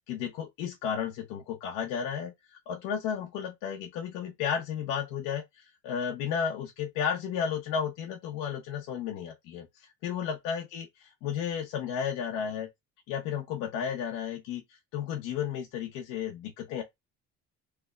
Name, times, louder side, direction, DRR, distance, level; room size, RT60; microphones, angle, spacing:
voice 1, 0.0-12.7 13.1-16.8, left 8 dB, 80° left, 0.9 m, -33 dB
3.3 x 2.1 x 3.5 m
cardioid pair, 105°, 30 cm